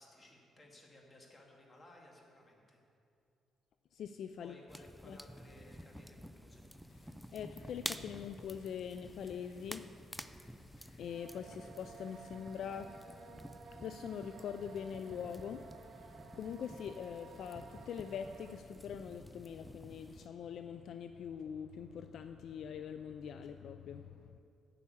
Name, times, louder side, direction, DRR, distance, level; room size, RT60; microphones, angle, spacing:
voice 1, 0.0-2.8 4.4-6.6, left 1 dB, 30° left, 0 dB, 2.4 m, -59 dB
voice 2, 3.9-4.5 5.0-5.2 7.3-9.9 11.0-13.0 13.8-24.4, left 8 dB, 70° left, 8 dB, 0.4 m, -43 dB
sound 1, 4.7-20.3, equal, ahead, 0.5 m, -51 dB
sound 2, 6.9-12.3, left 3 dB, 85° left, 1.3 m, -68 dB
sound 3, 11.1-18.6, right 5 dB, 70° right, 1.1 m, -55 dB
10.5 x 7.0 x 8.5 m, 2.5 s
cardioid pair, 90°, 0 cm